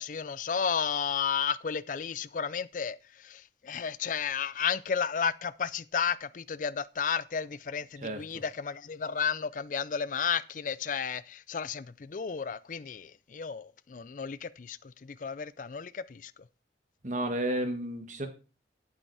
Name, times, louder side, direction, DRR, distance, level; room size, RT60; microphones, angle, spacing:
voice 1, 0.0-16.3, left 6 dB, 45° left, 0.4 m, -33 dB
voice 2, 17.0-18.3, right 1 dB, 45° right, 1.6 m, -31 dB
8.8 x 8.1 x 4.7 m
head